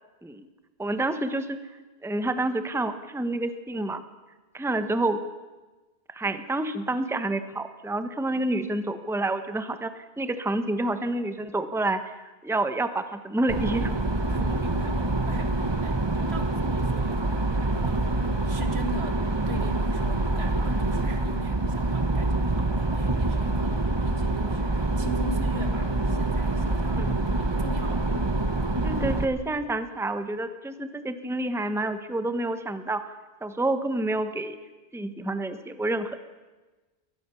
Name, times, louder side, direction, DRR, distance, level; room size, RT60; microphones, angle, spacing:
voice 1, 0.8-1.6 2.0-4.0 4.5-5.2 6.1-14.0 26.9-27.3 28.8-33.0 33.4-34.6 34.9-36.2, right 2 dB, 5° right, 10 dB, 1.0 m, -28 dB
sound 1, 13.5-29.2, right 2 dB, 25° right, 1.2 m, -26 dB
voice 2, 14.3-27.1 27.4-28.6, right 2 dB, 80° right, 7 dB, 2.3 m, -40 dB
22.0 x 19.5 x 7.0 m, 1.2 s
omnidirectional pair, 1.1 m